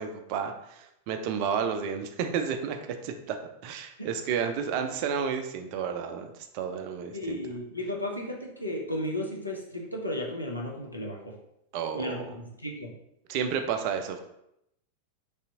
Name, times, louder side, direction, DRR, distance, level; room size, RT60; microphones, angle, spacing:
voice 1, 0.0-3.4 3.6-7.4 11.7-12.3 13.3-14.2, right 7 dB, 45° right, 6 dB, 0.4 m, -31 dB
voice 2, 7.1-11.3 11.9-12.9, left 1 dB, 85° left, -1 dB, 0.6 m, -34 dB
3.3 x 2.7 x 2.7 m, 0.80 s
figure-of-eight pair, 90°, 0 cm